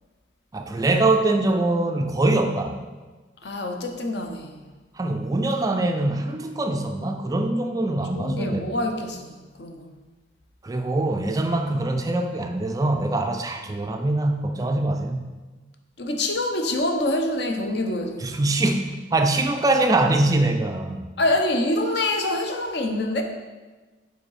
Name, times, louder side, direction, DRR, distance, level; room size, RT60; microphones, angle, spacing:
voice 1, 0.5-2.8 5.0-8.6 10.6-15.3 18.2-21.1, right 2 dB, 20° right, 5 dB, 0.3 m, -23 dB
voice 2, 3.4-4.6 8.1-9.9 16.0-18.2 21.2-23.2, left 1 dB, 60° left, 4 dB, 0.7 m, -26 dB
5.0 x 4.6 x 4.8 m, 1.3 s
head